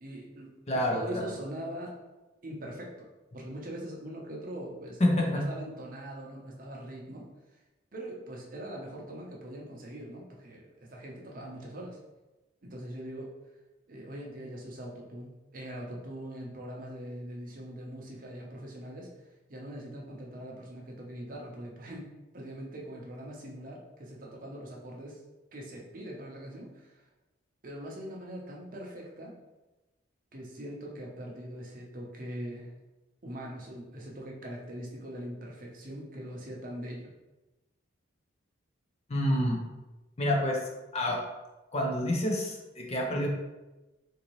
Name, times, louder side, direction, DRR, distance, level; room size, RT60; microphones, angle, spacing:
voice 1, 0.0-1.9 2.4-2.9 3.3-7.6 7.9-12.0 12.6-13.3 13.9-22.1 22.3-25.2 25.5-27.1 27.6-29.4 30.3-32.7 33.2-37.1, right 1 dB, 45° right, -1 dB, 0.6 m, -42 dB
voice 2, 0.7-1.2 5.0-5.4 39.1-39.6 40.2-40.6 40.9-41.2 41.7-43.3, left 1 dB, 30° left, 0 dB, 0.5 m, -27 dB
3.8 x 2.7 x 3.0 m, 1.1 s
head